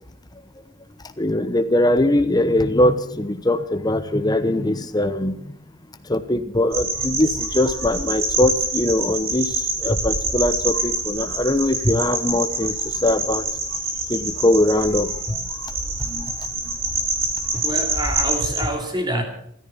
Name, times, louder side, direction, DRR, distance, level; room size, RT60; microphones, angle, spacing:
voice 1, 1.2-5.5 6.0-13.5 14.1-15.7 16.0-16.4 16.6-16.8, left 1 dB, 20° left, 10 dB, 1.0 m, -21 dB
sound 1, 6.7-18.6, right 2 dB, 45° right, 4.5 m, -26 dB
voice 2, 17.5-19.2, right 1 dB, 20° right, 4 dB, 2.7 m, -26 dB
14.5 x 13.5 x 7.2 m, 0.70 s
head